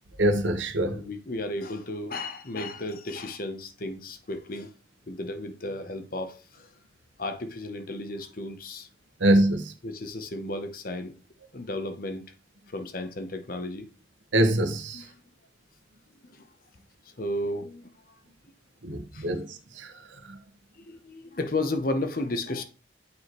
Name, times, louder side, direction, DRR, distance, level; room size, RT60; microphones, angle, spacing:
voice 1, 0.2-1.0 9.2-9.7 14.3-15.0 18.8-19.9 20.3-20.4, right 1 dB, 85° right, 1.3 m, -24 dB
voice 2, 0.9-4.7 5.1-6.7 7.2-8.9 9.8-11.1 11.5-12.2 12.7-13.9 14.9-15.1 16.2-16.5 17.2-18.2 19.1-19.3 20.7-22.6, left 2 dB, 50° left, 0.8 m, -33 dB
8.4 x 4.8 x 3.0 m
head